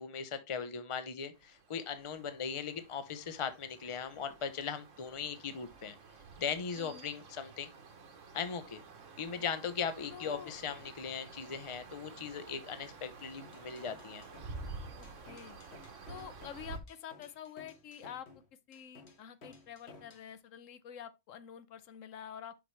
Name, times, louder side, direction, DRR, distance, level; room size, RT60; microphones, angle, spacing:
voice 1, 0.0-6.0 6.4-7.7 8.3-8.8 9.2-14.2, left 6 dB, 30° left, 0.7 m, -39 dB
sound 1, 1.3-16.8, right 4 dB, 70° right, 1.5 m, -50 dB
voice 2, 6.8-7.1 10.1-10.5 15.0-15.6 16.1-18.3 18.7-22.6, left 9 dB, 85° left, 1.1 m, -48 dB
sound 2, 13.4-20.3, left 3 dB, 60° left, 1.6 m, -56 dB
6.1 x 5.7 x 3.2 m
omnidirectional pair, 1.3 m